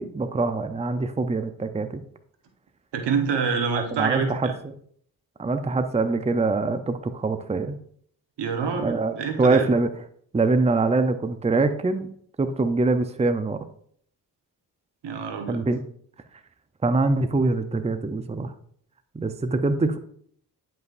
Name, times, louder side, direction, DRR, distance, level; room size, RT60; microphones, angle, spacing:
voice 1, 0.0-2.0 3.9-4.5 5.4-7.8 8.8-9.9 10.3-12.1 12.4-13.6 15.5-15.8 16.8-18.5 19.1-20.0, right 3 dB, 15° right, 9 dB, 0.6 m, -24 dB
voice 2, 2.9-4.5 8.4-9.7 15.0-15.6, right 5 dB, 75° right, 5 dB, 1.3 m, -27 dB
10.5 x 5.5 x 2.6 m, 0.63 s
supercardioid pair, 45°, 42 cm